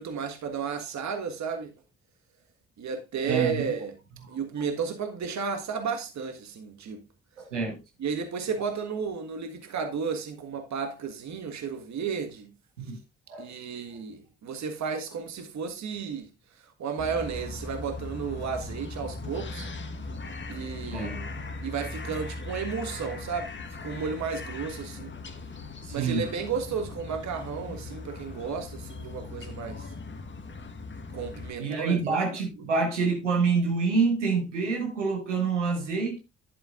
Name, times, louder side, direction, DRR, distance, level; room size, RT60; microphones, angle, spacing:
voice 1, 0.0-1.7 2.8-3.9 4.3-7.0 8.0-12.5 13.4-16.3 16.8-19.7 20.5-21.1 21.6-23.5 23.8-25.1 25.9-29.9 31.1-32.2, right 6 dB, 50° right, 1.6 m, -33 dB
voice 2, 3.3-3.7 4.2-4.4 7.4-7.8 12.8-13.0 13.3-13.5 20.9-21.3 25.8-26.2 31.6-36.2, right 4 dB, 85° right, 1.6 m, -27 dB
sound 1, 17.0-31.5, left 3 dB, 30° left, 1.4 m, -39 dB
11.0 x 8.3 x 2.5 m
figure-of-eight pair, 40°, 35 cm